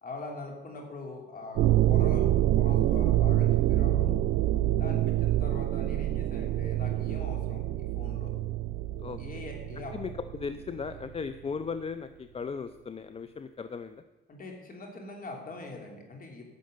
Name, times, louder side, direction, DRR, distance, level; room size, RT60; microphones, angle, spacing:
voice 1, 0.0-4.1 4.8-8.3 9.2-9.9 14.3-16.5, left 2 dB, 45° left, 1 dB, 3.0 m, -42 dB
sound 1, 1.6-11.0, right 13 dB, 80° right, 0.5 m, -26 dB
voice 2, 9.0-9.4 9.9-14.0, left 5 dB, 30° left, 11 dB, 0.5 m, -37 dB
10.5 x 6.5 x 7.8 m, 1.1 s
cardioid pair, 90°, 20 cm